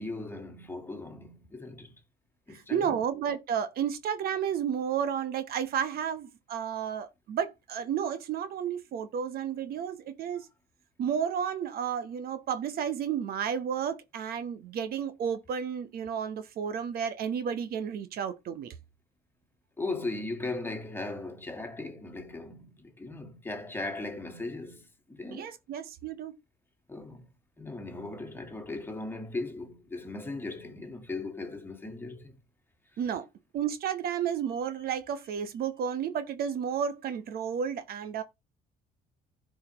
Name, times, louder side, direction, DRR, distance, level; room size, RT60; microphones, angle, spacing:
voice 1, 0.0-1.9 2.5-3.0 19.8-25.5 26.9-27.3 27.6-32.3, left 2 dB, 10° left, 2.0 m, -38 dB
voice 2, 2.5-10.5 11.0-18.7 25.3-26.3 33.0-33.3 33.5-38.2, right 8 dB, 65° right, 1.0 m, -32 dB
15.0 x 5.1 x 3.0 m
cardioid pair, 110°, 17 cm